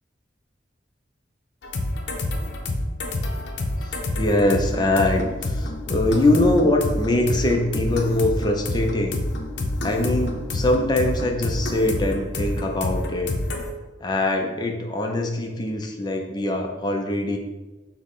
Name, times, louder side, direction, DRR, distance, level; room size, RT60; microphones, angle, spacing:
sound 1, 1.6-13.7, left 2 dB, 75° left, 0.6 m, -28 dB
voice 1, 3.8-9.2 9.8-13.3 14.0-17.4, left 1 dB, 25° left, 2 dB, 0.4 m, -23 dB
6.2 x 2.1 x 3.6 m, 1.2 s
head